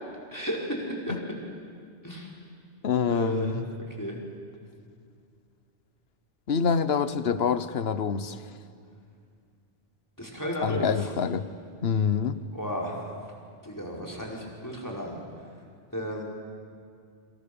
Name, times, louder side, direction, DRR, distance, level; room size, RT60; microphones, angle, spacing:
voice 1, 0.3-1.1 2.0-2.3 3.1-3.6 3.9-4.2 10.2-11.1 12.5-13.1 13.6-15.2 15.9-16.2, equal, 15° left, -2 dB, 5.0 m, -33 dB
voice 2, 2.8-3.6 6.5-8.4 10.6-11.4 11.8-12.4, left 6 dB, 60° left, 13 dB, 1.2 m, -26 dB
29.0 x 26.5 x 7.0 m, 2.3 s
omnidirectional pair, 1.2 m